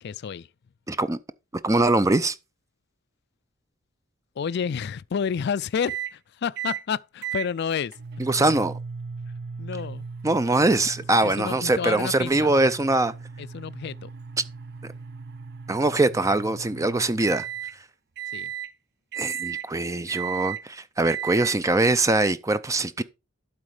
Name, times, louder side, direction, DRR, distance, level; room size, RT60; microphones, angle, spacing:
voice 1, 0.0-0.5 4.4-7.9 9.6-10.1 11.1-12.5 13.4-14.1 18.3-18.5, left 7 dB, 55° left, 0.4 m, -30 dB
voice 2, 0.9-1.2 1.6-2.4 8.2-8.7 10.2-13.1 15.7-17.5 19.2-23.0, right 2 dB, 15° right, 0.4 m, -22 dB
sound 1, 5.9-6.1 6.6-6.8 7.2-17.8 18.2-18.7 19.1-19.7 20.1-20.6 21.0-21.6, right 8 dB, 55° right, 0.7 m, -36 dB
12.0 x 4.2 x 5.0 m
head